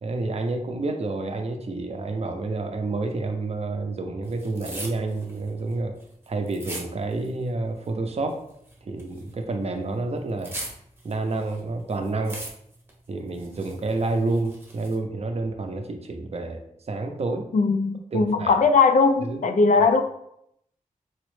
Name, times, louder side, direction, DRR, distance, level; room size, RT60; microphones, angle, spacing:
voice 1, 0.0-5.9 6.3-8.4 8.8-10.5 11.0-12.4 13.1-16.6 16.9-17.5 18.1-18.5 19.3-19.4, right 3 dB, 50° right, 0.5 m, -29 dB
sound 1, 4.2-7.5 7.7-9.4 9.8-11.6 11.9-12.9 13.3-15.0, right 1 dB, 15° right, 0.8 m, -40 dB
voice 2, 17.5-20.0, left 4 dB, 70° left, 0.4 m, -19 dB
4.1 x 2.0 x 3.1 m
wide cardioid pair, 90°, 14 cm